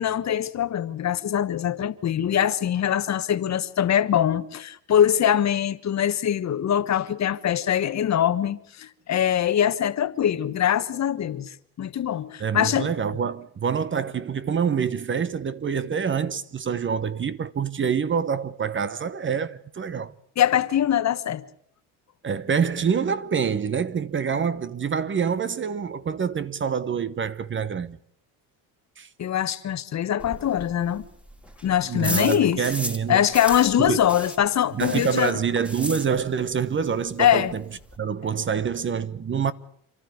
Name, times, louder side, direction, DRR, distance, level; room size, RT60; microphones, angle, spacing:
voice 1, 0.0-12.9 20.4-21.4 29.2-31.1 31.6-32.6 33.1-35.4 37.2-37.5, left 10 dB, 45° left, 1.3 m, -23 dB
voice 2, 12.4-20.1 22.2-28.0 29.0-29.1 31.9-33.3 33.8-34.0 34.7-37.6 38.0-39.5, right 7 dB, 30° right, 1.1 m, -26 dB
sound 1, 30.2-33.1 33.3-36.5 36.8-36.9 37.2-37.3 37.5-38.0, equal, 5° right, 2.4 m, -35 dB
28.5 x 12.5 x 9.5 m
cardioid pair, 100°, 39 cm